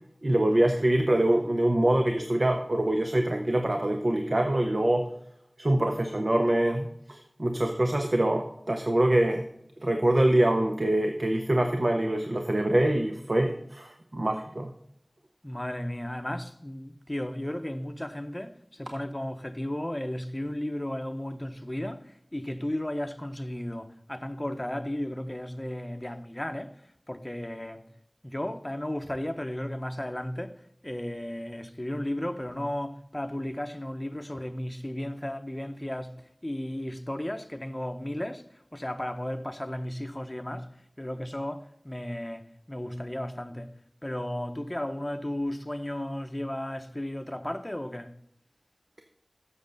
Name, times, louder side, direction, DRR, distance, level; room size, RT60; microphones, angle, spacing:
voice 1, 0.2-5.1 5.6-9.4 9.8-14.7, right 1 dB, 60° right, 0.7 m, -24 dB
voice 2, 15.4-26.8 27.1-27.8 28.2-36.1 36.4-40.7 41.0-43.7 44.0-48.1, left 1 dB, 25° left, 0.8 m, -34 dB
7.8 x 6.4 x 5.2 m
wide cardioid pair, 40°, 0 cm